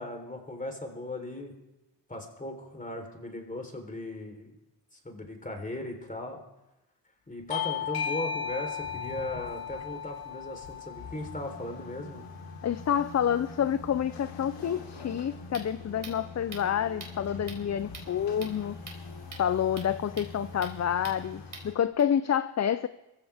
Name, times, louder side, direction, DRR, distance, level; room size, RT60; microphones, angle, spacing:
voice 1, 0.0-1.5 2.1-4.5 4.9-6.4 7.3-12.2, left 1 dB, 20° left, 3 dB, 3.9 m, -38 dB
Bell / Doorbell, 7.5-12.7, left 8 dB, 55° left, 1.6 m, -36 dB
sound 1, 8.5-21.7, left 3 dB, 75° left, 3.7 m, -45 dB
voice 2, 12.6-18.8 19.4-22.9, left 9 dB, 40° left, 13 dB, 0.6 m, -28 dB
sound 2, 15.1-22.0, right 3 dB, 45° right, 4.8 m, -48 dB
22.5 x 15.5 x 3.5 m, 0.98 s
cardioid pair, 65°, 44 cm